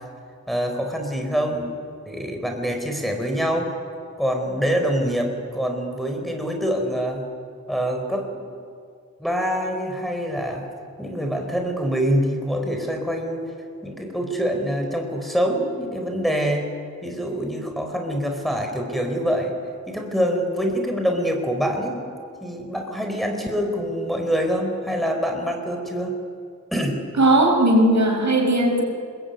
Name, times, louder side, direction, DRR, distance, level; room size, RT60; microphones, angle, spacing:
voice 1, 0.5-1.8 2.0-3.7 4.2-7.3 7.7-8.5 9.2-10.7 11.0-13.4 13.8-16.7 17.0-19.5 19.9-22.0 22.4-26.2 26.7-27.0, equal, ahead, 3 dB, 4.6 m, -25 dB
voice 2, 27.2-28.8, right 1 dB, 65° right, 1 dB, 6.4 m, -17 dB
29.0 x 22.0 x 9.4 m, 2.3 s
wide cardioid pair, 75°, 30 cm